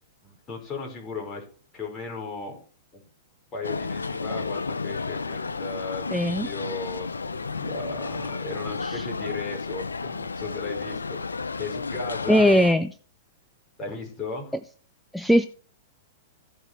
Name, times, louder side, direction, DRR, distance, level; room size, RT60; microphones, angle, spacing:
voice 1, 0.2-1.4 1.7-2.6 2.9-3.1 3.5-12.7 13.8-14.5, left 3 dB, 25° left, 1 dB, 5.0 m, -36 dB
sound 1, 3.6-12.7, left 4 dB, 90° left, 0.6 m, -32 dB
voice 2, 6.1-6.5 12.3-12.9 15.1-15.5, equal, ahead, 10 dB, 0.6 m, -19 dB
15.5 x 5.4 x 4.7 m, 0.40 s
hypercardioid pair, 110°, 0 cm